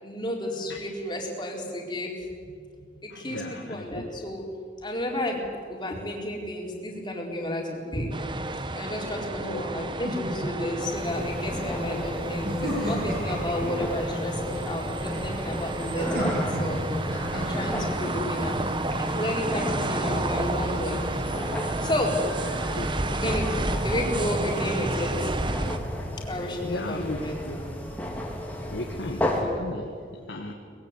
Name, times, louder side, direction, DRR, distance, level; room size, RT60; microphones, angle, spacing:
voice 1, 0.0-2.1 3.0-4.4 4.8-5.4 5.7-8.1 8.7-16.8 17.3-18.6 18.9-21.0 21.8-22.2 23.1-25.3 26.2-27.4, left 1 dB, 25° left, -1 dB, 4.3 m, -31 dB
voice 2, 3.1-4.0 9.4-9.9 22.7-22.9 26.4-27.6 28.7-30.5, left 1 dB, 70° left, 1 dB, 1.9 m, -36 dB
sound 1, 8.1-25.8, right 2 dB, 25° right, 1.0 m, -31 dB
sound 2, 10.0-10.9 12.4-13.7 15.9-18.1, equal, 50° right, 7.5 m, -31 dB
sound 3, 10.9-29.4, equal, 10° left, 3.3 m, -33 dB
24.0 x 21.0 x 8.3 m, 2.1 s
head